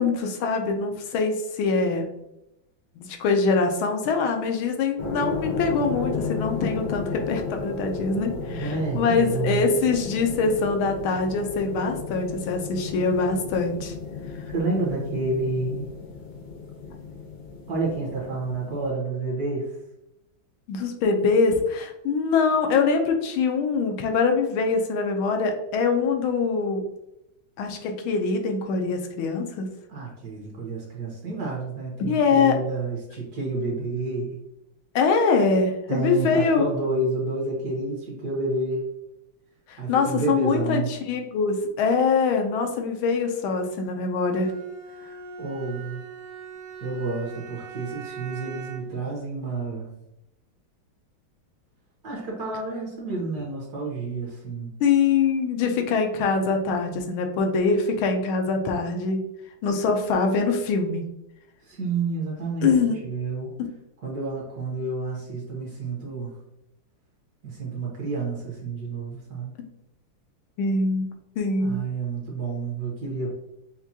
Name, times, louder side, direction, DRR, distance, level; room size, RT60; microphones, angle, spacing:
voice 1, 0.0-2.1 3.0-13.9 20.7-26.9 27.6-29.7 32.0-32.6 34.9-36.6 39.7-44.5 54.8-59.3 59.6-61.0 62.6-63.0 63.6-63.7 70.6-71.8, left 4 dB, 80° left, 4 dB, 1.4 m, -23 dB
sound 1, 5.0-18.9, left 4 dB, 65° left, 1.3 m, -34 dB
voice 2, 8.6-9.7 14.5-15.9 17.7-19.7 29.9-34.4 35.9-38.8 39.8-40.9 45.4-46.0 46.8-49.9 52.0-54.7 61.7-63.5 64.0-66.4 67.4-69.5 71.6-73.3, right 3 dB, 55° right, -3 dB, 1.3 m, -29 dB
Bowed string instrument, 44.2-49.0, right 5 dB, 85° right, 0.7 m, -40 dB
5.9 x 2.2 x 2.7 m, 0.86 s
omnidirectional pair, 2.3 m